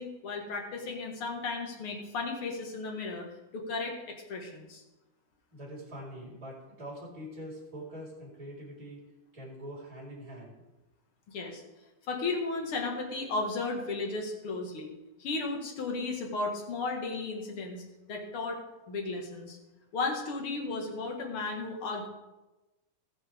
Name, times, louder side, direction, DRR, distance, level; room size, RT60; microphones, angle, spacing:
voice 1, 0.0-3.3 3.5-4.8 11.3-11.6 12.1-14.9 15.2-17.8 18.1-18.6 18.9-19.6 19.9-22.1, left 3 dB, 50° left, 1 dB, 1.8 m, -34 dB
voice 2, 5.5-9.0 9.3-10.6, equal, 10° right, -5 dB, 3.8 m, -44 dB
20.0 x 6.6 x 3.6 m, 1.1 s
omnidirectional pair, 4.2 m